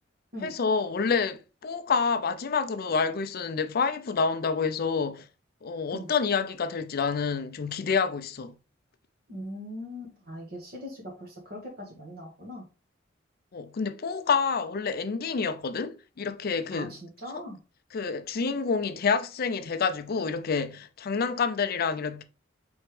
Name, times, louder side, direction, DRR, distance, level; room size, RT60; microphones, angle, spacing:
voice 1, 0.4-5.3 5.6-8.6 13.5-17.0 17.3-17.4 17.9-22.2, left 5 dB, 50° left, 0.4 m, -28 dB
voice 2, 9.3-12.6 16.7-17.6, left 1 dB, 50° right, 1.4 m, -40 dB
4.3 x 3.5 x 3.2 m
head